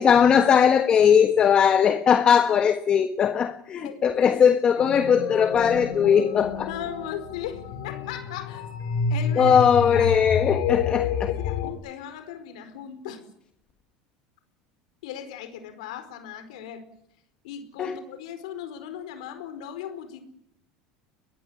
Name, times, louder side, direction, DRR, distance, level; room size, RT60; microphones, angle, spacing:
voice 1, 0.0-6.7 9.4-11.3 17.8-18.0, left 7 dB, 25° left, 9 dB, 1.4 m, -19 dB
voice 2, 3.8-4.3 4.7-4.9 6.7-8.7 9.1-9.6 9.9-10.1 11.0-13.2 15.0-16.8 17.4-20.2, left 9 dB, 85° left, 11 dB, 4.7 m, -38 dB
sound 1, 4.8-11.7, left 6 dB, 65° left, 4.6 m, -29 dB
23.0 x 20.5 x 9.9 m, 0.77 s
supercardioid pair, 150°, 4 cm